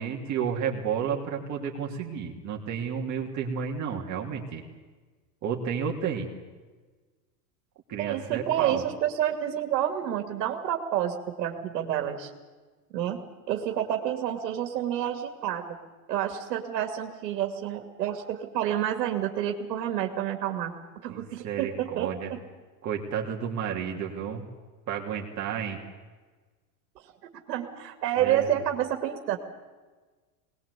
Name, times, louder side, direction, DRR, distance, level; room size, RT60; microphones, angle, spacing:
voice 1, 0.0-4.6 5.4-6.3 7.9-8.8 21.1-22.3 22.8-24.4 24.9-25.8 28.2-28.6, right 7 dB, 35° right, 0 dB, 3.0 m, -31 dB
voice 2, 8.0-12.3 12.9-13.2 13.5-15.8 16.1-20.7 21.0-22.4 27.0-27.1 27.5-29.4, right 11 dB, 85° right, 4 dB, 2.7 m, -29 dB
22.0 x 20.0 x 8.3 m, 1.3 s
supercardioid pair, 130°, 48 cm